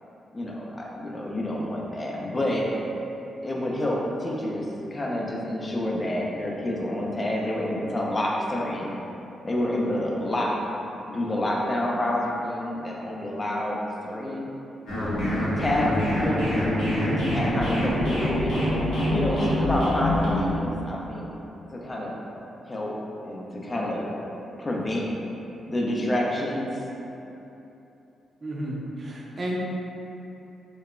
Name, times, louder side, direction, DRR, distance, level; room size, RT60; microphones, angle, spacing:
voice 1, 0.3-2.7 3.4-4.7 4.9-8.9 9.4-10.6 11.1-13.8 14.0-14.5 15.6-16.8 17.2-18.6 19.1-21.3 21.7-22.1 22.7-22.9 23.2-24.1 24.6-25.0 25.7-26.9, left 1 dB, 30° left, -2 dB, 0.4 m, -28 dB
sound 1, 14.9-20.5, left 1 dB, 85° left, 0.7 m, -25 dB
voice 2, 16.9-17.3 28.4-29.6, right 1 dB, 45° right, -3 dB, 0.4 m, -32 dB
2.8 x 2.1 x 2.3 m, 3.0 s
cardioid pair, 70°, 0 cm